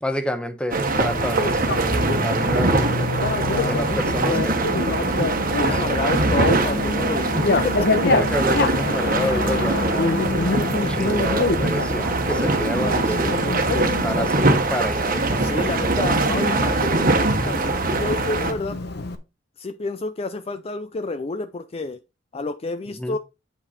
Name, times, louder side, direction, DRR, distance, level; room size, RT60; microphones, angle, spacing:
voice 1, 0.0-3.0 3.6-6.1 8.1-15.9 23.0-23.2, equal, 5° left, 0.9 m, -30 dB
sound 1, 0.7-18.5, right 2 dB, 50° right, 1.3 m, -23 dB
Bicycle, 0.9-19.1, left 2 dB, 60° left, 1.0 m, -26 dB
voice 2, 3.5-3.8 5.6-7.9 10.3-10.7 13.1-13.5 15.4-18.8 19.6-22.0 22.3-23.2, left 3 dB, 30° left, 0.4 m, -29 dB
8.5 x 5.3 x 4.1 m
head